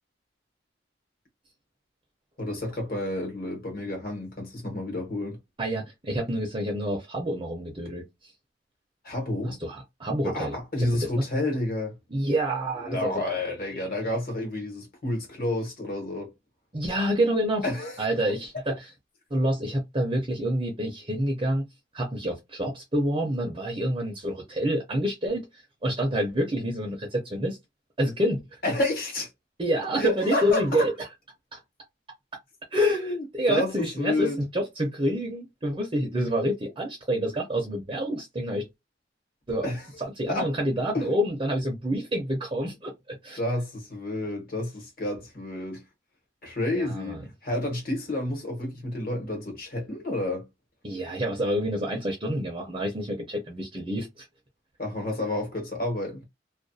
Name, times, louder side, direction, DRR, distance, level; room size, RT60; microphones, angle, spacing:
voice 1, 2.4-5.4 9.0-9.6 10.2-12.0 12.8-16.3 17.6-18.0 28.6-29.3 30.0-30.9 32.9-34.4 39.6-40.0 40.3-40.5 40.9-41.2 43.4-45.8 46.4-50.5 54.8-56.2, left 1 dB, 50° left, 1.2 m, -30 dB
voice 2, 5.6-8.3 9.5-10.6 11.2-11.3 12.1-13.6 16.7-17.6 18.0-18.8 19.3-21.7 21.9-27.6 28.0-28.6 29.6-30.9 31.5-31.6 32.7-38.7 39.5-39.7 40.0-43.4 46.7-47.2 50.8-54.3, equal, 25° right, 0.5 m, -28 dB
2.3 x 2.3 x 2.6 m
head